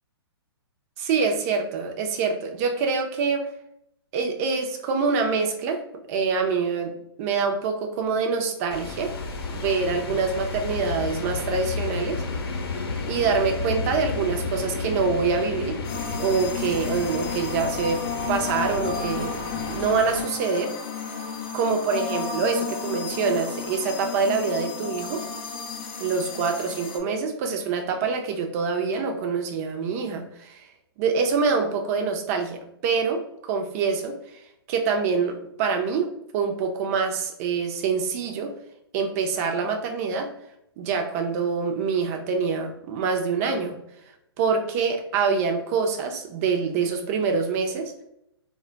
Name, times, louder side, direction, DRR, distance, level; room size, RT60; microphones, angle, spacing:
voice 1, 1.0-3.4 4.1-5.8 6.1-6.9 7.2-9.1 9.4-12.2 13.1-15.8 16.2-18.0 18.3-20.7 21.1-21.2 21.5-25.2 26.0-30.7 31.0-34.4 34.7-36.1 36.3-38.5 38.9-40.3 40.8-43.8 44.4-47.9, right 5 dB, 35° right, 4 dB, 0.5 m, -25 dB
sound 1, 8.7-20.2, left 4 dB, 65° left, 0.7 m, -32 dB
sound 2, 15.8-27.0, left 6 dB, 30° left, 0.4 m, -33 dB
2.2 x 2.1 x 3.7 m, 0.78 s
hypercardioid pair, 135°, 14 cm